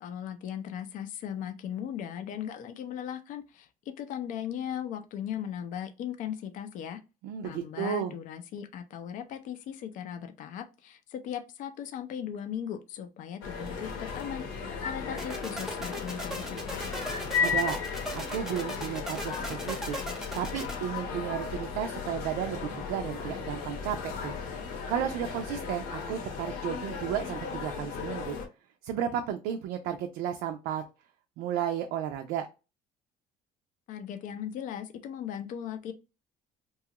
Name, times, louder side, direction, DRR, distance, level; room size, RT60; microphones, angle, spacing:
voice 1, 0.0-3.7 4.0-7.0 7.4-16.9 33.9-35.9, left 9 dB, 55° left, 0.5 m, -38 dB
voice 2, 7.2-8.1 17.2-17.8 18.1-24.3 24.9-28.4 28.8-30.8 31.4-32.5, right 9 dB, 85° right, 0.4 m, -33 dB
sound 1, 13.4-28.5, left 5 dB, 90° left, 1.0 m, -35 dB
sound 2, 15.2-20.7, equal, 5° right, 0.7 m, -38 dB
2.8 x 2.3 x 2.8 m
cardioid pair, 145°, 16 cm